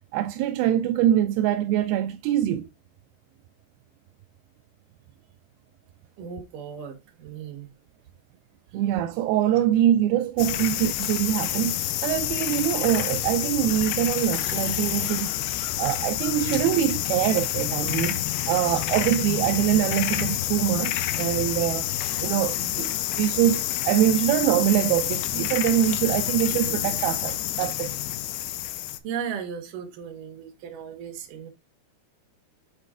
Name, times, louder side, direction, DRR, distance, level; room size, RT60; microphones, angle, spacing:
voice 1, 0.1-2.7 8.7-15.4 15.8-21.9 22.2-28.0, right 12 dB, 85° right, 2.2 m, -24 dB
voice 2, 6.2-7.7 8.7-8.8 10.6-10.7 18.6-18.8 29.0-31.5, right 7 dB, 65° right, 2.5 m, -36 dB
sound 1, 10.4-29.0, left 13 dB, 80° left, 2.5 m, -28 dB
7.2 x 4.2 x 3.6 m
omnidirectional pair, 4.8 m